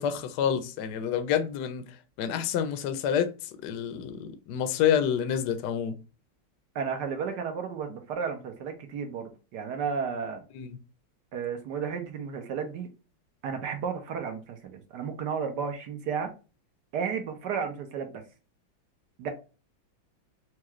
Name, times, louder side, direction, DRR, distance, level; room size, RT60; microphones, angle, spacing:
voice 1, 0.0-1.8 2.2-3.3 3.6-5.9 10.5-10.7, left 8 dB, 70° left, 1.1 m, -28 dB
voice 2, 6.7-10.4 11.3-12.9 13.4-16.3 16.9-18.1 19.2-19.3, right 6 dB, 65° right, 1.3 m, -33 dB
4.6 x 2.4 x 3.0 m
omnidirectional pair, 2.1 m